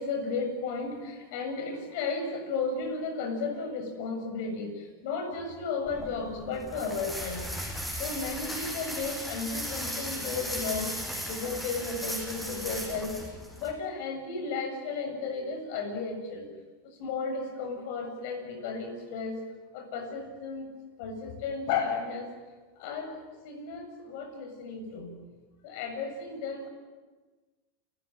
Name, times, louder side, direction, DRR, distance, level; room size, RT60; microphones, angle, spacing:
voice 1, 0.0-7.7 8.0-11.0 11.3-13.2 13.6-16.5 16.8-19.4 19.7-20.7 21.0-22.3 22.7-25.1 25.6-26.7, left 4 dB, 60° left, 5 dB, 7.6 m, -34 dB
sound 1, 5.9-13.7, equal, 5° left, 5.8 m, -37 dB
30.0 x 15.0 x 9.4 m, 1.3 s
supercardioid pair, 120°, 0 cm